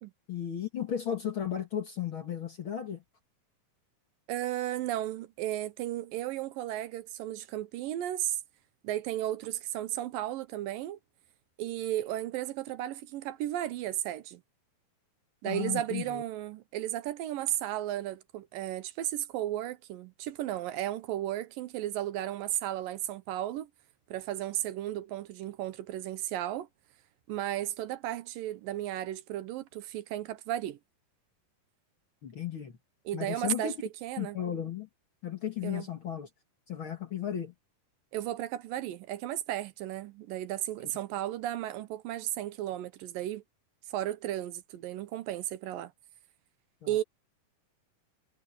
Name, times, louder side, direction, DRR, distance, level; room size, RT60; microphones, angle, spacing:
voice 1, 0.3-3.0 15.4-16.2 32.2-32.8 33.1-33.7 34.2-34.9 35.2-36.3 36.7-37.5 46.8-46.9, left 9 dB, 45° left, 1.9 m, -34 dB
voice 2, 4.3-8.4 8.8-11.0 11.6-14.4 15.4-23.7 24.1-26.7 27.3-30.8 33.1-34.4 35.6-35.9 38.1-43.4 43.9-45.9 46.9-47.0, right 13 dB, 80° right, 2.5 m, -34 dB
omnidirectional pair, 4.1 m